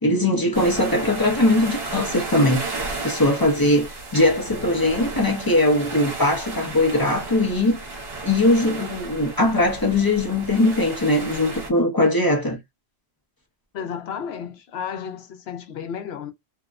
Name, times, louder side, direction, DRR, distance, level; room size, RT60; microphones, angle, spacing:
voice 1, 0.0-2.6 3.0-7.8 8.2-12.6, left 1 dB, 30° left, 0.4 m, -20 dB
sound 1, 0.5-11.7, right 3 dB, 65° right, 1.1 m, -33 dB
voice 2, 13.7-16.3, left 7 dB, 75° left, 0.8 m, -32 dB
2.7 x 2.0 x 2.3 m
omnidirectional pair, 1.1 m